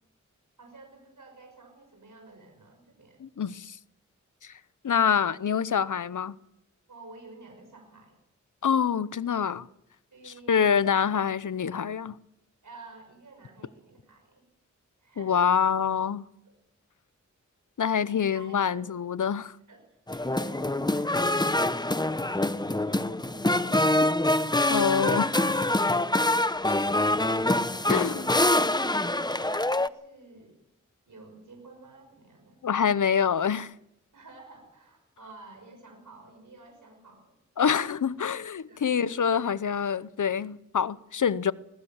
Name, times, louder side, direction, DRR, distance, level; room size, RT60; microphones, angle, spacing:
voice 1, 0.6-3.2 6.9-8.2 10.1-10.8 12.6-14.5 15.0-15.5 16.4-16.5 18.0-18.9 19.7-19.8 20.1-24.2 27.8-28.3 28.7-30.6 31.1-32.6 34.1-37.4 38.6-38.9, right 3 dB, 85° right, 5.9 m, -50 dB
voice 2, 3.2-3.8 4.4-4.5 4.8-6.3 8.6-9.7 10.5-12.2 15.2-16.2 17.8-19.6 24.7-25.2 27.9-28.2 32.6-33.7 37.6-41.5, left 7 dB, 80° left, 0.8 m, -26 dB
sound 1, 20.1-29.9, left 1 dB, 15° left, 0.9 m, -25 dB
20.5 x 19.5 x 7.2 m
wide cardioid pair, 55°, 30 cm